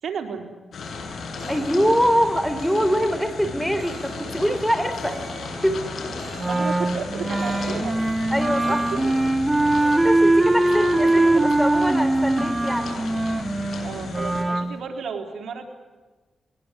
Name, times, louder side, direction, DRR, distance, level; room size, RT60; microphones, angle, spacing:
voice 1, 0.0-0.5 6.3-8.0 8.9-9.1 10.6-11.5 13.8-15.6, right 6 dB, 80° right, 4 dB, 4.0 m, -33 dB
sound 1, 0.7-14.4, left 3 dB, 75° left, 6.9 m, -35 dB
sound 2, 1.4-11.2, right 4 dB, 55° right, 3.6 m, -46 dB
voice 2, 1.5-5.2 5.6-5.8 8.3-8.8 10.0-12.9, equal, ahead, 11 dB, 3.9 m, -23 dB
Wind instrument woodwind instrument, 6.4-14.7, right 2 dB, 20° right, 1.6 m, -21 dB
22.5 x 21.0 x 9.8 m, 1.3 s
cardioid pair, 60°, 0 cm